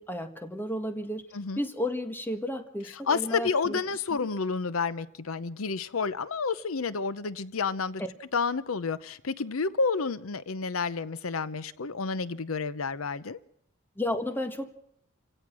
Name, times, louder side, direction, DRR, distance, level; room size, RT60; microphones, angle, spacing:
voice 1, 0.0-1.2 1.6-3.8 4.1-4.3 8.0-8.1 14.0-14.7, left 1 dB, 10° left, 7 dB, 1.6 m, -33 dB
voice 2, 3.1-8.0 8.3-13.4, left 4 dB, 80° left, 16 dB, 0.8 m, -30 dB
28.0 x 17.0 x 6.2 m, 0.70 s
head